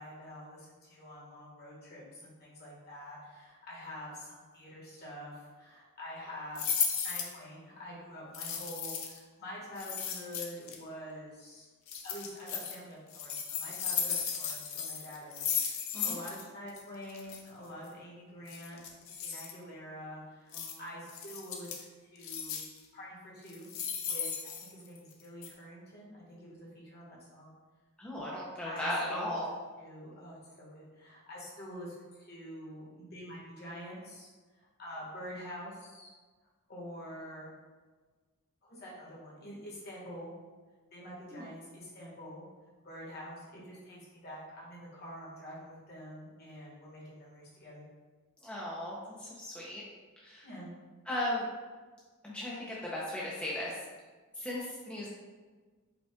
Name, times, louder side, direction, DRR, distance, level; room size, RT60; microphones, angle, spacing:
voice 1, 0.0-11.7 12.0-18.8 19.2-22.6 22.9-23.7 24.1-27.6 28.6-34.3 34.5-36.1 36.7-37.5 38.6-40.3 40.9-42.5 42.8-47.8 50.4-50.7 54.3-54.4, equal, 50° left, -5 dB, 1.3 m, -46 dB
sound 1, 6.6-7.4 8.3-9.2 9.8-10.8 11.9-12.8 13.1-16.4 16.7-16.8 17.1-17.4 18.5-19.5 20.5-20.7 21.1-21.8 22.2-22.8 23.5-25.1 25.4-25.5, left 7 dB, 75° left, 0.6 m, -35 dB
voice 2, 28.0-29.5 41.3-41.4 48.4-49.8 50.2-50.4 51.1-51.5 52.2-53.8 54.4-55.1, left 1 dB, 5° left, -6 dB, 0.5 m, -36 dB
5.0 x 2.3 x 3.6 m, 1.4 s
head